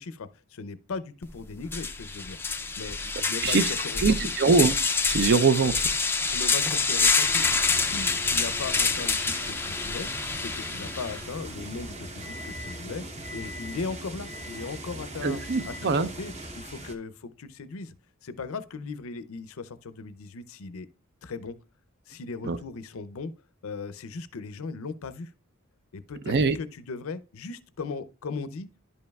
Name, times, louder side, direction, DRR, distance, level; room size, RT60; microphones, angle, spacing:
voice 1, 0.0-2.4 2.8-4.3 5.6-5.7 6.2-7.5 7.7-10.1 10.3-13.0 13.3-17.9 18.2-20.9 21.2-21.6 22.1-23.3 23.6-25.3 25.9-28.7, left 4 dB, 65° left, 0.5 m, -38 dB
sound 1, 1.2-1.3 1.7-11.2, left 4 dB, 10° left, 0.4 m, -27 dB
voice 2, 4.0-4.8 5.1-5.7 15.2-16.1 22.4-22.6 26.3-26.6, right 4 dB, 50° right, 0.5 m, -22 dB
sound 2, 7.2-17.0, right 1 dB, 30° right, 0.9 m, -40 dB
Microwave oven, 10.3-12.9 13.2-13.8 14.2-14.8 15.3-15.9, left 3 dB, 75° right, 2.5 m, -46 dB
11.0 x 5.3 x 2.3 m
head